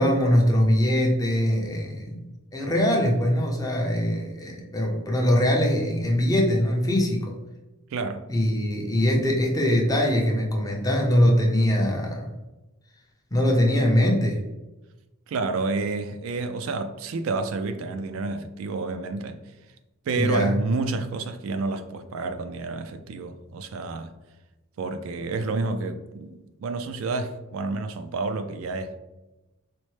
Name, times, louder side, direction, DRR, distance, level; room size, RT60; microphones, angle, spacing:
voice 1, 0.0-7.4 8.3-12.3 13.3-14.4 20.2-20.6, equal, 15° left, 0.5 m, -22 dB
voice 2, 7.9-8.3 15.3-19.4 20.1-24.1 24.8-29.0, right 3 dB, 65° right, 0.3 m, -29 dB
4.2 x 2.0 x 3.1 m
head